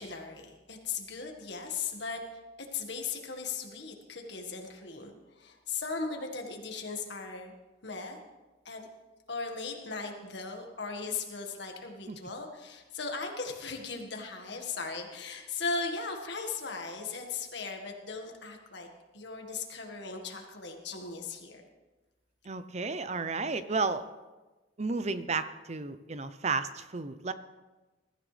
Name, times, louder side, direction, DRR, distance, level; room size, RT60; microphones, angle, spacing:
voice 1, 0.0-2.2 2.7-7.5 7.8-8.2 8.7-8.8 9.3-18.9 19.1-21.6, left 4 dB, 70° left, 3 dB, 1.8 m, -38 dB
voice 2, 22.4-24.0 24.8-27.3, right 4 dB, 35° right, 12 dB, 0.7 m, -32 dB
21.0 x 13.5 x 3.4 m, 1.2 s
head